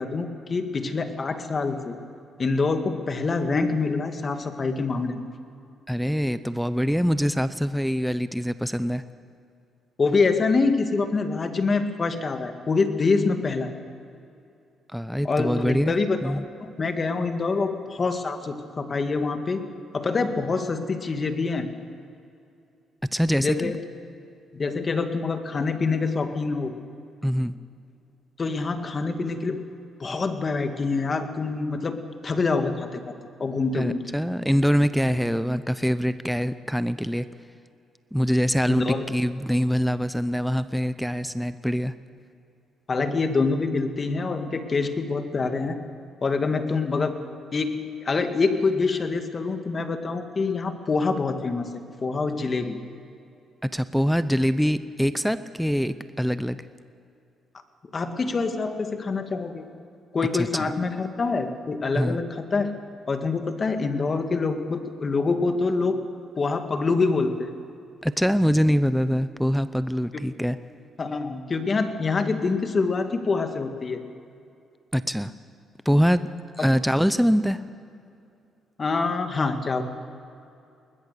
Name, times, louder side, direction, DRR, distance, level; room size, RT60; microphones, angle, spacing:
voice 1, 0.0-1.9 2.4-5.2 10.0-13.8 15.2-19.6 19.9-21.7 23.4-23.8 24.5-26.7 28.4-29.7 30.0-32.0 32.2-33.1 33.4-34.0 38.7-39.0 42.9-45.8 46.2-47.2 47.5-52.8 57.9-59.7 60.1-62.7 63.1-66.0 66.4-67.5 70.1-70.2 71.0-74.0 78.8-79.8, left 4 dB, 35° left, 7 dB, 1.9 m, -25 dB
voice 2, 5.9-9.0 14.9-16.4 23.1-23.7 27.2-27.5 33.7-37.3 38.1-41.9 53.6-56.6 60.3-60.7 62.0-62.2 68.0-70.6 74.9-75.3 75.8-76.2 76.6-77.6, equal, ahead, 12 dB, 0.7 m, -24 dB
21.0 x 20.5 x 6.8 m, 2.6 s
cardioid pair, 90°, 0 cm